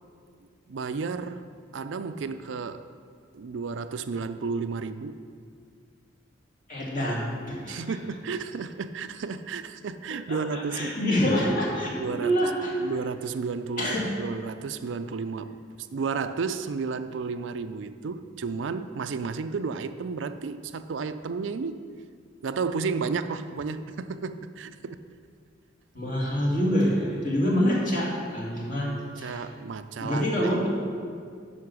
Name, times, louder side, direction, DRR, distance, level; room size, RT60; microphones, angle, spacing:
voice 1, 0.7-1.4 1.7-2.9 3.3-5.2 7.7-11.2 12.0-12.3 12.8-15.6 15.9-21.8 22.4-25.0 29.2-30.6, right 5 dB, 75° right, 11 dB, 0.4 m, -32 dB
voice 2, 6.7-7.8 10.3-11.9 12.2-12.7 13.8-14.1 25.9-28.9 29.1-29.4 30.0-30.7, equal, 45° left, -4 dB, 2.4 m, -26 dB
9.5 x 5.9 x 6.1 m, 2.1 s
head